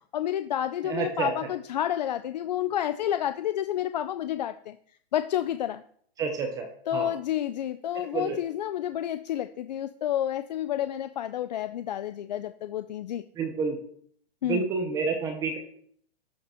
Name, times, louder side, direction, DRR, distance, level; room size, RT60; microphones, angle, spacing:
voice 1, 0.1-4.8 5.1-5.8 6.9-13.2 14.4-14.7, left 11 dB, 45° left, 11 dB, 0.4 m, -30 dB
voice 2, 0.8-1.3 6.2-6.7 6.9-7.1 8.1-8.4 13.4-13.8 14.5-15.6, right 5 dB, 10° right, 4 dB, 0.7 m, -29 dB
11.5 x 6.6 x 4.4 m, 0.64 s
hypercardioid pair, 165°, 31 cm